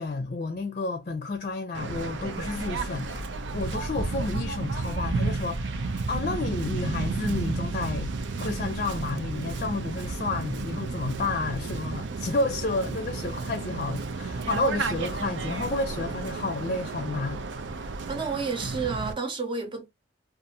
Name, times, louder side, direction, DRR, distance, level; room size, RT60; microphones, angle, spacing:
voice 1, 0.0-3.2 3.5-17.4, left 3 dB, 45° left, 0.5 m, -31 dB
Waves surf, 1.7-19.1, right 3 dB, 80° right, 0.5 m, -32 dB
voice 2, 18.1-19.9, right 4 dB, 25° right, 0.6 m, -30 dB
2.6 x 2.4 x 2.7 m
head